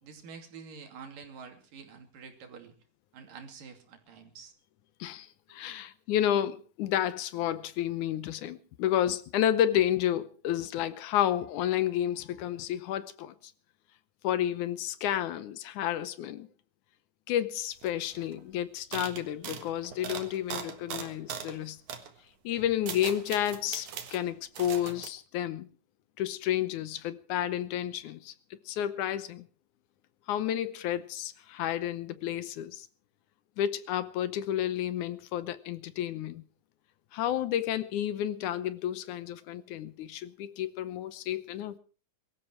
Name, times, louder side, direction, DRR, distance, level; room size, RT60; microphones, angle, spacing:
voice 1, 0.0-2.7 3.1-4.5 5.5-5.8, right 6 dB, 85° right, 4.3 m, -48 dB
voice 2, 5.0-13.3 14.2-16.5 17.3-21.8 22.4-25.7 26.2-28.3 28.7-29.5 30.3-32.9 33.6-36.4 37.1-41.8, left 11 dB, 75° left, 2.2 m, -31 dB
sound 1, 17.8-17.9 18.1-18.4 18.9-21.6 21.9-22.1 22.6-24.2 24.6-25.1, right 7 dB, 65° right, 3.0 m, -40 dB
23.0 x 13.5 x 4.5 m
omnidirectional pair, 3.7 m